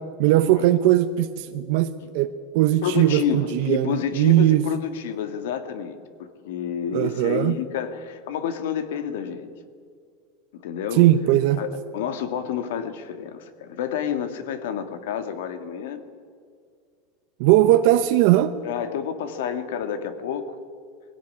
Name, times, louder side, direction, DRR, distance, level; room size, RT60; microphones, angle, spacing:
voice 1, 0.2-4.6 6.9-7.6 11.0-11.6 17.4-18.5, right 14 dB, 60° right, 8 dB, 0.9 m, -19 dB
voice 2, 2.8-9.5 10.5-11.1 11.6-16.0 18.6-20.6, left 8 dB, 85° left, 9 dB, 2.2 m, -29 dB
21.0 x 17.5 x 9.8 m, 2.1 s
supercardioid pair, 150°, 0 cm